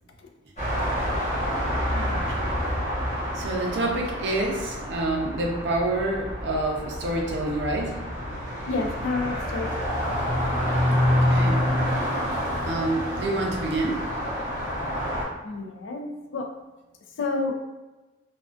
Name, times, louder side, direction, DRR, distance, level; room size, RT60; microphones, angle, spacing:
sound 1, 0.6-15.2, equal, 35° left, 0.8 m, -27 dB
voice 1, 1.9-2.4 3.3-8.0 11.2-11.6 12.7-14.0, right 2 dB, 60° right, 0 dB, 0.5 m, -27 dB
voice 2, 8.7-10.0 15.4-16.5 17.2-17.5, left 3 dB, 70° left, 3 dB, 0.4 m, -29 dB
2.4 x 2.3 x 2.3 m, 1.1 s
head